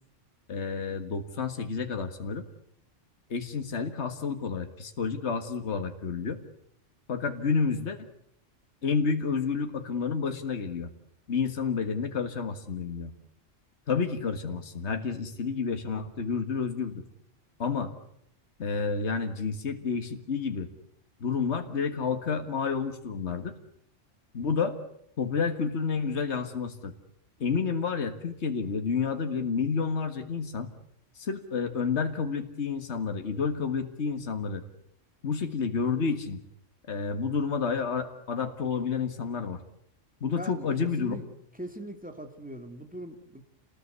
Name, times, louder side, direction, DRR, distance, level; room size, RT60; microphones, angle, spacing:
voice 1, 0.5-2.4 3.3-6.4 7.1-8.0 8.8-10.9 11.3-13.1 13.9-17.0 17.6-17.9 18.6-20.7 21.2-23.5 24.3-24.8 25.2-26.9 27.4-30.7 31.2-34.6 35.2-36.4 36.9-39.6 40.2-41.2, left 5 dB, 60° left, 7 dB, 2.0 m, -30 dB
voice 2, 40.3-41.2 41.5-43.4, right 1 dB, 5° right, 6 dB, 2.5 m, -41 dB
28.0 x 19.0 x 8.2 m, 0.73 s
omnidirectional pair, 1.3 m